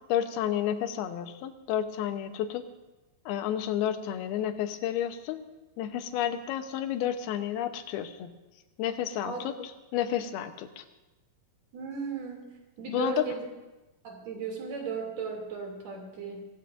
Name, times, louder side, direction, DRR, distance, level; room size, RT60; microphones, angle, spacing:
voice 1, 0.1-2.6 3.3-5.4 5.8-8.3 8.8-10.9 12.9-13.2, left 10 dB, 80° left, 8 dB, 2.7 m, -31 dB
voice 2, 11.7-12.5 12.8-13.5 14.0-16.5, right 5 dB, 45° right, 0 dB, 3.6 m, -36 dB
23.5 x 16.5 x 2.6 m, 1.1 s
omnidirectional pair, 4.5 m